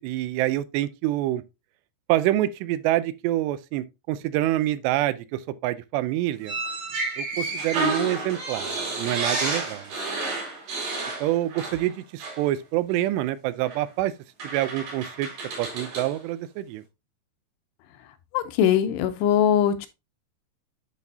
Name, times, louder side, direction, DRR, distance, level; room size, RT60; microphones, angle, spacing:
voice 1, 0.0-1.4 2.1-6.6 7.2-8.7 9.0-9.9 11.2-14.1 14.5-15.3 15.6-16.8, right 14 dB, 85° right, 2.7 m, -26 dB
sound 1, 6.4-11.9 12.2-12.4 13.7-13.8 14.4-16.1, right 3 dB, 65° right, 4.8 m, -30 dB
voice 2, 18.3-19.9, left 9 dB, 85° left, 2.9 m, -21 dB
10.5 x 4.1 x 2.7 m
omnidirectional pair, 4.9 m